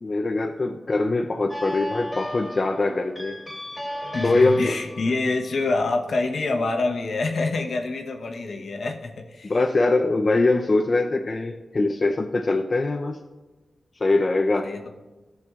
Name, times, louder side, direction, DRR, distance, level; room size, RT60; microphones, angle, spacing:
voice 1, 0.0-3.4 4.2-4.7 9.5-13.2 14.0-14.7, left 2 dB, 45° left, 2 dB, 0.6 m, -22 dB
sound 1, 1.5-6.6, left 1 dB, 5° left, 2.6 m, -36 dB
voice 2, 4.1-9.5 14.5-14.9, left 3 dB, 75° left, 3 dB, 0.9 m, -26 dB
14.0 x 6.8 x 2.4 m, 1.2 s
cardioid pair, 60°, 0 cm